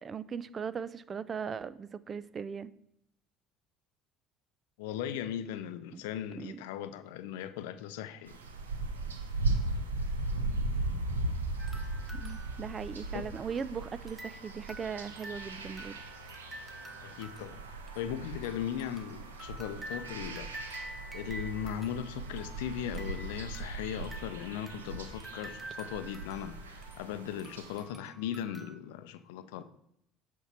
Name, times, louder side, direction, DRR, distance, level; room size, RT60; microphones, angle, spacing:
voice 1, 0.0-2.7 5.9-6.0 6.4-6.6 12.1-16.0, right 6 dB, 35° right, 0.4 m, -39 dB
voice 2, 4.8-8.4 13.1-13.3 17.0-17.6 18.0-20.5 21.1-26.6 27.0-29.6, left 10 dB, 75° left, 0.5 m, -38 dB
sound 1, 8.3-27.8, right 2 dB, 90° right, 0.7 m, -38 dB
sound 2, 11.6-13.6 14.1-28.7, right 1 dB, 15° right, 1.0 m, -49 dB
8.2 x 4.6 x 4.3 m
hypercardioid pair, 65°, 0 cm